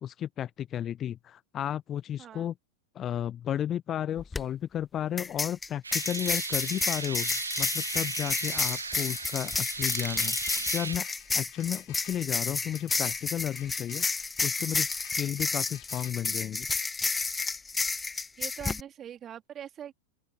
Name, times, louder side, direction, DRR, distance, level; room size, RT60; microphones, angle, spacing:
voice 1, 0.0-2.5 2.9-11.1 11.3-14.0 14.4-16.7, left 10 dB, 30° left, 1.0 m, -33 dB
voice 2, 2.2-2.5 18.4-19.9, right 9 dB, 25° right, 2.9 m, -42 dB
sound 1, 4.2-4.4 5.2-18.8, left 4 dB, 10° left, 1.2 m, -31 dB
sound 2, 5.8-11.0, right 4 dB, 75° right, 1.7 m, -36 dB
sound 3, 10.8-16.1, left 26 dB, 50° left, 4.9 m, -52 dB
open air
figure-of-eight pair, 90°, 0 cm